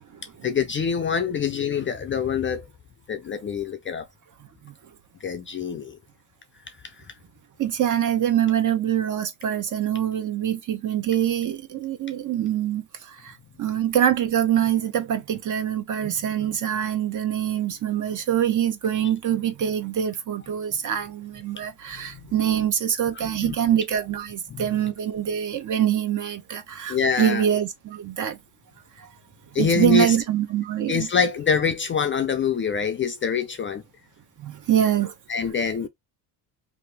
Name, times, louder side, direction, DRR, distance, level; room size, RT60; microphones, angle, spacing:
voice 1, 0.4-2.7 3.1-4.1 5.2-6.0 22.0-22.1 23.2-23.7 24.5-24.7 26.9-27.4 29.5-30.2 30.9-33.8 35.3-35.9, left 6 dB, 30° left, 0.4 m, -25 dB
voice 2, 7.6-28.4 29.0-29.1 29.6-31.1 34.4-35.1, right 10 dB, 45° right, 0.7 m, -24 dB
2.9 x 2.5 x 3.2 m
cardioid pair, 120°, 44 cm